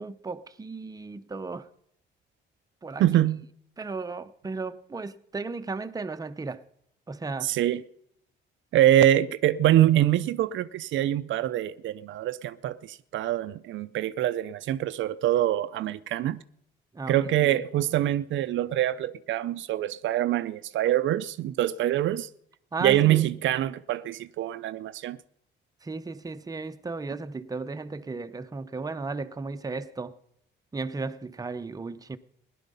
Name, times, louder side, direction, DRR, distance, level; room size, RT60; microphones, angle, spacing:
voice 1, 0.0-1.7 2.8-3.0 3.8-6.6 7.1-7.5 16.9-17.6 22.7-23.3 25.8-30.2 30.7-32.2, right 3 dB, 20° right, 0.7 m, -35 dB
voice 2, 3.0-3.4 7.4-7.8 8.7-16.4 17.1-22.3 22.8-25.2, right 13 dB, 75° right, 0.5 m, -24 dB
17.0 x 11.0 x 5.4 m
cardioid pair, 90°, 20 cm